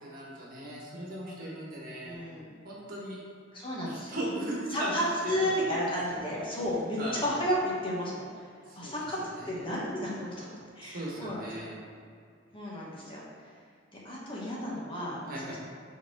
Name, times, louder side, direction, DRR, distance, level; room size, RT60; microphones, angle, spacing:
voice 1, 0.0-2.2 2.6-3.2 3.9-5.8 6.1-6.3 7.0-7.2 8.7-9.1 9.3-9.7 10.8-11.8 15.3-15.6, right 1 dB, 50° right, -4 dB, 1.5 m, -38 dB
voice 2, 2.0-2.5 3.5-4.2 4.7-8.4 8.8-11.4 12.5-13.2 14.0-15.2 15.4-15.6, equal, 25° left, -5 dB, 1.3 m, -32 dB
5.0 x 4.2 x 5.9 m, 2.2 s
head